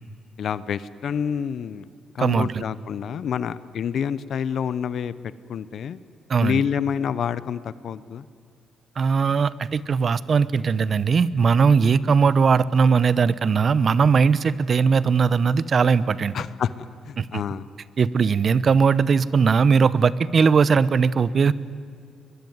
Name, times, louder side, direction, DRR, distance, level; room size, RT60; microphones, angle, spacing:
voice 1, 0.4-1.9 2.1-5.1 5.5-6.0 6.4-8.2 16.3-17.7, left 8 dB, 65° left, 16 dB, 0.8 m, -28 dB
voice 2, 2.2-2.6 6.3-6.6 9.0-16.3 17.2-17.3 18.0-21.5, right 5 dB, 45° right, 18 dB, 0.8 m, -19 dB
23.0 x 21.5 x 9.6 m, 2.3 s
cardioid pair, 100°, 0 cm